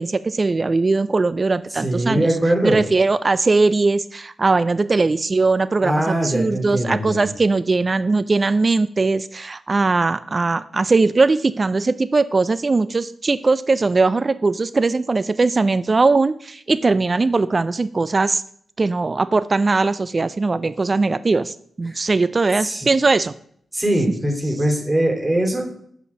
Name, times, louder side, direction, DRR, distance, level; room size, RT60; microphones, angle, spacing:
voice 1, 0.0-2.3 2.6-18.4 18.8-23.3, right 3 dB, 45° right, 15 dB, 0.3 m, -20 dB
voice 2, 1.7-2.8 5.8-7.3 21.9-22.0 22.6-22.9 23.7-25.7, right 1 dB, 25° right, 2 dB, 2.5 m, -21 dB
6.3 x 5.7 x 5.4 m, 0.63 s
supercardioid pair, 40°, 0 cm